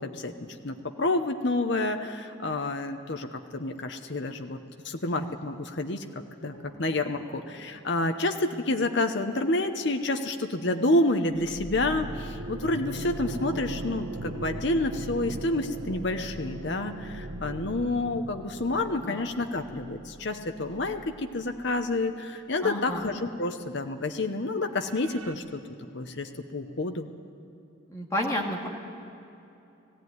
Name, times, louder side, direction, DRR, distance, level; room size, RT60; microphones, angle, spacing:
voice 1, 0.0-4.6 4.8-6.0 6.4-25.6 25.9-27.1, left 2 dB, 55° left, 6 dB, 0.9 m, -29 dB
sound 1, 6.5-9.3 11.3-22.7 23.0-23.1 24.8-25.3, right 1 dB, 85° right, 1.3 m, -40 dB
voice 2, 22.6-23.0 27.9-28.7, left 1 dB, 15° left, -1 dB, 2.1 m, -30 dB
19.0 x 15.0 x 9.5 m, 2.8 s
head